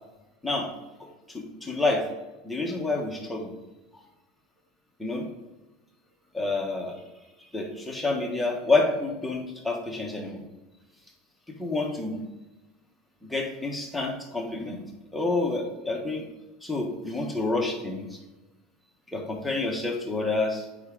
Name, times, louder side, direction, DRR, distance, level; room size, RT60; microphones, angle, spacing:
voice 1, 1.3-2.1 2.4-3.5 3.9-4.0 5.0-5.3 6.3-7.0 7.5-10.4 11.6-12.2 13.2-14.8 15.1-16.3 16.6-18.2 19.1-20.7, left 3 dB, 5° left, 0 dB, 1.2 m, -28 dB
7.8 x 5.0 x 3.7 m, 1.1 s
supercardioid pair, 150°, 0 cm